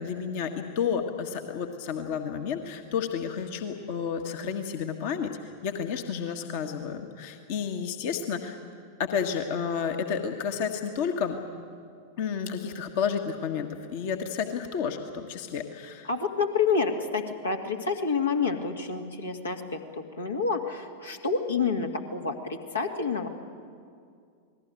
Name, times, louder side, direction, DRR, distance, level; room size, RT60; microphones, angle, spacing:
voice 1, 0.0-5.3 5.6-8.6 9.0-11.4 12.2-16.1, left 7 dB, 50° left, 4 dB, 1.7 m, -31 dB
voice 2, 16.0-23.3, left 5 dB, 75° left, 3 dB, 2.1 m, -28 dB
28.5 x 20.0 x 9.2 m, 2.3 s
figure-of-eight pair, 90°, 0 cm